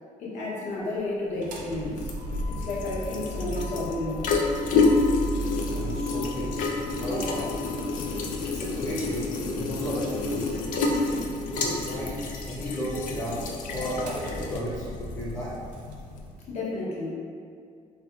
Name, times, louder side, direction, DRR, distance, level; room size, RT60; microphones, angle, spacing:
voice 1, 0.2-2.1 2.5-4.4 16.5-17.2, left 2 dB, 55° left, -6 dB, 0.8 m, -32 dB
sound 1, 1.3-16.4, left 3 dB, 75° left, 0.4 m, -29 dB
Motor vehicle (road), 1.4-15.9, equal, 75° right, 0.5 m, -38 dB
voice 2, 5.5-6.7 7.0-7.5 8.4-10.5 10.9-12.2 12.5-15.5, equal, 25° left, -9 dB, 0.7 m, -34 dB
3.6 x 2.7 x 2.3 m, 2.3 s
cardioid pair, 165°, 14 cm